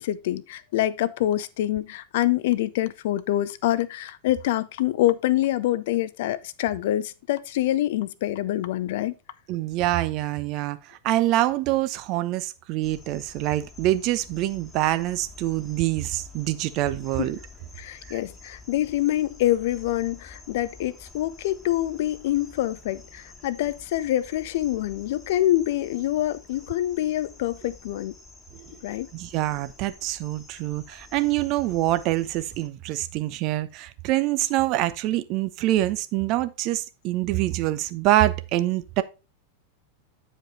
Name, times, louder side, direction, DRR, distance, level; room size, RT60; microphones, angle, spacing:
voice 1, 0.0-9.1 17.2-17.3 17.8-28.1 28.8-29.1, left 14 dB, 55° left, 0.5 m, -26 dB
voice 2, 9.5-10.8 11.0-17.4 18.1-18.2 29.1-39.0, right 15 dB, 40° right, 0.6 m, -25 dB
sound 1, 12.8-32.7, left 3 dB, 10° left, 1.4 m, -49 dB
9.0 x 5.1 x 4.1 m
figure-of-eight pair, 90°, 0 cm